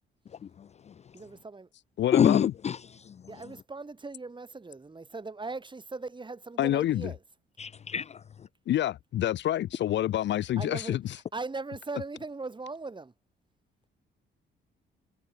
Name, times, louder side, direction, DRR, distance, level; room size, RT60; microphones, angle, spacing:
voice 1, 0.6-0.9 2.1-3.2 7.6-8.2, left 8 dB, 35° left, 0.4 m, -27 dB
voice 2, 1.1-1.7 3.3-7.2 10.6-11.0 11.3-13.1, right 3 dB, 25° right, 5.0 m, -39 dB
voice 3, 2.0-2.5 6.6-7.1 8.7-11.2, left 12 dB, 65° left, 0.7 m, -27 dB
cardioid pair, 90°, 20 cm